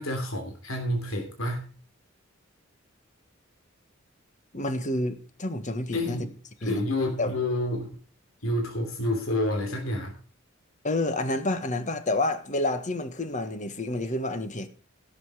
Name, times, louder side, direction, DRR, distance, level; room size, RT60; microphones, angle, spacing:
voice 1, 0.0-1.7 5.9-6.3 6.6-8.0 8.4-10.2, left 1 dB, 85° left, 3.2 m, -29 dB
voice 2, 4.5-6.3 6.6-6.8 7.2-7.3 10.8-14.7, left 2 dB, 40° left, 1.6 m, -29 dB
16.5 x 7.9 x 5.0 m
head